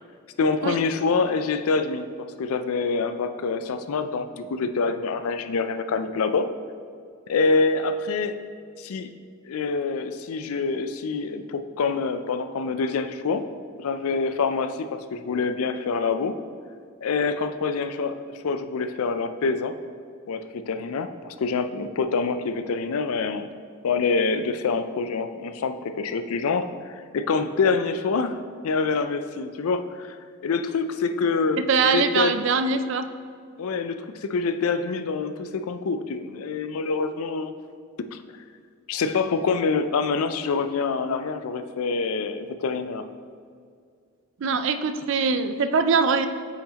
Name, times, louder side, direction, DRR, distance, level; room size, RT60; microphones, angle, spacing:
voice 1, 0.4-6.5 7.3-8.4 8.8-9.1 9.5-13.5 13.8-16.3 17.0-19.7 20.3-23.5 23.8-28.4 28.6-30.2 30.4-32.3 33.6-37.5 38.1-38.4 38.9-43.1, left 4 dB, 75° left, 9 dB, 0.4 m, -26 dB
voice 2, 31.7-33.1 44.4-46.3, right 5 dB, 55° right, 9 dB, 0.4 m, -22 dB
8.3 x 5.8 x 2.9 m, 2.2 s
head